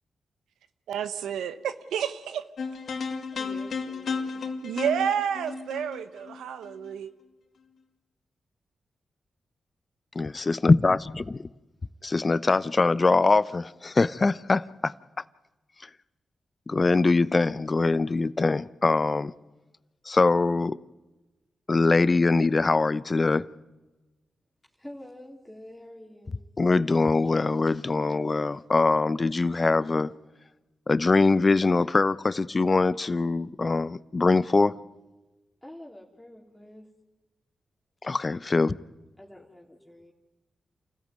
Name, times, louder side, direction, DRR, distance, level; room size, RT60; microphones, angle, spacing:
voice 1, 0.9-2.4 4.6-7.1, right 8 dB, 90° right, 0.8 m, -30 dB
sound 1, 2.6-6.9, left 5 dB, 70° left, 2.2 m, -33 dB
voice 2, 3.3-4.5 24.6-26.4 35.6-36.9 39.2-40.1, left 1 dB, 10° left, 3.7 m, -47 dB
voice 3, 10.1-11.5 12.0-14.9 15.8-15.9 16.7-19.3 20.1-20.8 21.7-23.5 26.6-30.1 30.9-34.8 38.0-38.7, left 3 dB, 40° left, 0.8 m, -23 dB
28.0 x 14.5 x 9.3 m
supercardioid pair, 40°, 0 cm